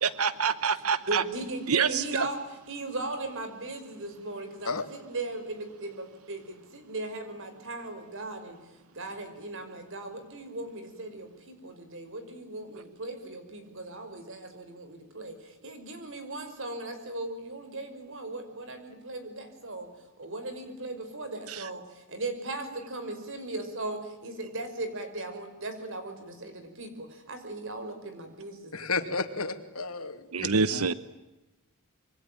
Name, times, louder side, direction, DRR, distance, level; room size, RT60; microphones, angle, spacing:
voice 1, 0.0-1.2 1.7-2.3 21.5-21.7 30.3-30.9, right 5 dB, 80° right, 15 dB, 1.0 m, -26 dB
voice 2, 1.1-2.4 2.7-8.6 8.9-19.9 20.2-29.1, right 2 dB, 60° right, 8 dB, 5.6 m, -38 dB
voice 3, 28.7-30.8, left 4 dB, 85° left, 9 dB, 2.6 m, -33 dB
26.5 x 24.0 x 9.3 m, 1.0 s
head